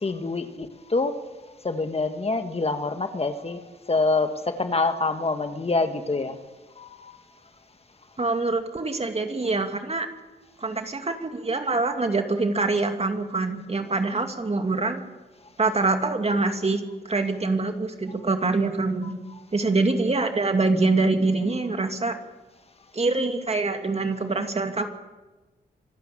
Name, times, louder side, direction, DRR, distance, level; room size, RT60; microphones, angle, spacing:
voice 1, 0.0-1.1 1.6-6.4 6.8-7.2, left 3 dB, 35° left, 8 dB, 1.7 m, -26 dB
voice 2, 8.2-10.1 10.6-15.0 15.6-19.2 19.5-22.2 22.9-24.9, right 3 dB, 35° right, 5 dB, 2.6 m, -25 dB
26.0 x 13.0 x 8.6 m, 1.2 s
cardioid pair, 55°, 18 cm